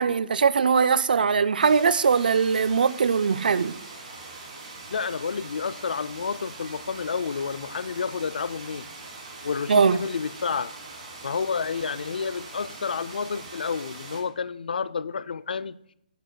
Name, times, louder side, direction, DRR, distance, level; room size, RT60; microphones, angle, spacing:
voice 1, 0.0-3.8 9.7-10.0, right 5 dB, 80° right, 0.4 m, -21 dB
sound 1, 1.6-14.2, right 3 dB, 45° right, 3.0 m, -42 dB
voice 2, 4.9-8.9 9.4-10.7 11.2-15.8, left 5 dB, 80° left, 0.4 m, -30 dB
13.0 x 9.1 x 2.3 m
hypercardioid pair, 160°, 5 cm